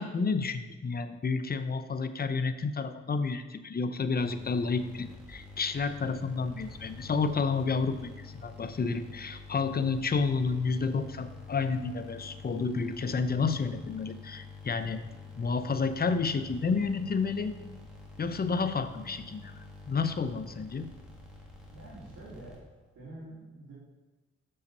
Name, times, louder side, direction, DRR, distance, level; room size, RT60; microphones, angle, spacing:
voice 1, 0.0-15.0 15.4-17.5 18.2-20.9, left 4 dB, 30° left, 10 dB, 0.7 m, -30 dB
sound 1, 4.2-22.9, left 4 dB, 5° right, 2.2 m, -48 dB
voice 2, 21.7-22.5 22.9-23.7, right 2 dB, 75° right, -10 dB, 2.8 m, -46 dB
6.4 x 5.7 x 5.4 m, 1.2 s
cardioid pair, 60°, 29 cm